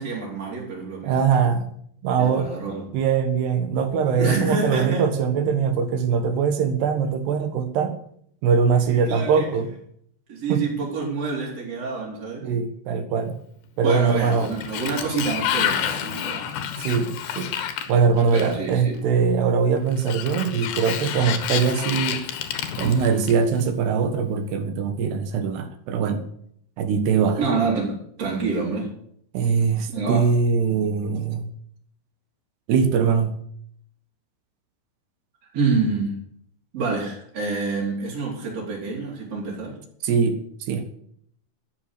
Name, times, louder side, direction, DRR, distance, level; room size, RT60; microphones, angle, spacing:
voice 1, 0.0-1.2 2.2-2.8 4.2-5.0 9.1-9.5 10.3-12.5 13.8-16.4 18.3-19.0 27.4-28.9 29.9-30.3 35.5-36.1 36.7-39.8, right 4 dB, 40° right, -4 dB, 4.7 m, -27 dB
voice 2, 1.0-1.7 2.0-2.5 2.9-8.0 8.4-9.7 10.5-10.7 12.4-13.4 13.8-14.5 16.8-17.5 17.9-22.2 22.8-26.3 26.8-27.4 29.3-31.5 32.7-33.4 40.0-40.4 40.7-40.9, right 6 dB, 80° right, 8 dB, 3.6 m, -22 dB
Sliding door, 14.2-18.8 19.9-23.6, left 9 dB, 75° left, 3.3 m, -29 dB
13.0 x 10.5 x 6.8 m, 0.66 s
omnidirectional pair, 4.8 m